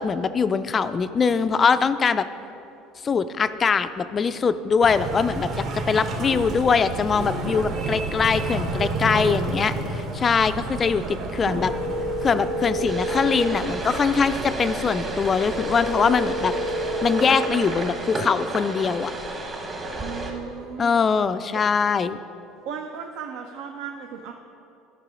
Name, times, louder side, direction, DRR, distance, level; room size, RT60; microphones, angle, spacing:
voice 1, 0.0-2.3 3.0-5.5 5.7-11.7 12.2-16.5 16.8-19.1 20.8-22.2, left 5 dB, 25° left, 12 dB, 0.3 m, -22 dB
sound 1, 4.8-17.2, right 3 dB, 45° right, 1.2 m, -31 dB
voice 2, 10.4-11.5 19.9-21.1 22.7-24.3, right 7 dB, 70° right, 4 dB, 0.6 m, -37 dB
sound 2, 11.5-13.5 15.5-17.5, equal, 85° right, 2.0 m, -29 dB
sound 3, 12.9-20.3, right 2 dB, 25° right, 1.2 m, -32 dB
12.5 x 6.0 x 4.9 m, 2.8 s
cardioid pair, 150°, 0 cm